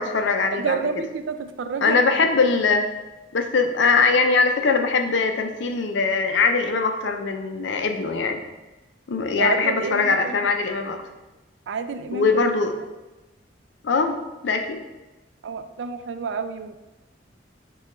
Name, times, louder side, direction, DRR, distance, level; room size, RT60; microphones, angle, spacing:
voice 1, 0.0-0.8 1.8-2.9 3.3-8.4 9.1-11.0 12.1-12.7 13.8-14.2 14.4-14.8, left 4 dB, 75° left, 6 dB, 0.5 m, -21 dB
voice 2, 0.5-2.1 9.4-10.3 11.7-12.3 15.4-16.8, right 5 dB, 75° right, 9 dB, 0.4 m, -29 dB
6.5 x 2.3 x 3.0 m, 1.1 s
head